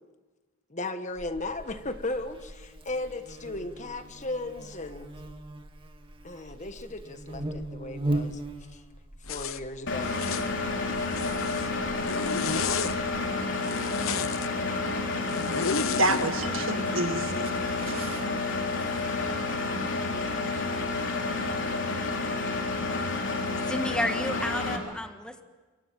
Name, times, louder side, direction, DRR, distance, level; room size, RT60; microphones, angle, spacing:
voice 1, 0.7-5.1 6.2-8.4 8.7-8.8 9.3-10.1, left 2 dB, 35° left, 9 dB, 1.4 m, -36 dB
Buzz, 1.2-13.3, right 1 dB, 25° right, 1.9 m, -39 dB
Zipper (clothing), 9.3-9.6 10.0-10.5 11.0-11.7 12.0-12.9 13.6-14.5 15.3-16.3, left 5 dB, 85° left, 1.0 m, -32 dB
Engine, 9.9-24.8, left 3 dB, 60° left, 3.8 m, -30 dB
voice 2, 16.0-18.2, right 2 dB, 70° right, 7 dB, 2.0 m, -29 dB
voice 3, 23.7-25.4, left 1 dB, 5° left, 7 dB, 1.5 m, -31 dB
28.5 x 24.0 x 7.6 m, 1.3 s
head